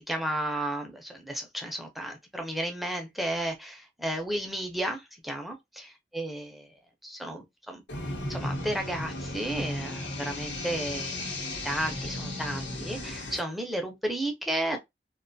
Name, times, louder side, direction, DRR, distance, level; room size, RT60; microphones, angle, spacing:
voice 1, 0.0-5.9 6.1-6.7 7.0-7.8 8.2-11.2 11.6-14.8, right 1 dB, ahead, 0.4 m, -33 dB
sound 1, 7.9-13.4, left 1 dB, 90° left, 0.9 m, -35 dB
2.4 x 2.2 x 2.5 m
head